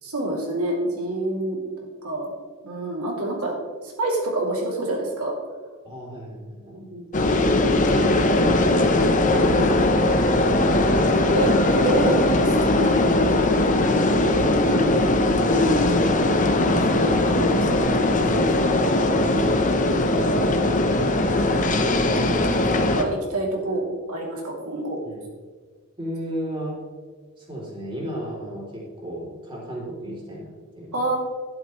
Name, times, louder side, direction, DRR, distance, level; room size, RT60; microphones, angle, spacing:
voice 1, 0.0-1.6 2.0-2.3 2.6-3.5 3.8-5.3 6.7-7.1 9.3-9.9 10.8-13.0 14.3-14.5 16.9-18.4 20.7-21.2 22.5-25.0 30.9-31.2, right 2 dB, 80° right, -2 dB, 3.0 m, -28 dB
voice 2, 5.8-6.8 13.7-14.1 19.2-19.3 19.8-20.3 25.0-25.3 26.0-26.8 27.4-31.0, equal, 25° right, -4 dB, 3.4 m, -34 dB
sound 1, 7.1-23.0, left 2 dB, 35° left, 0.9 m, -20 dB
12.0 x 11.5 x 3.2 m, 1.5 s
head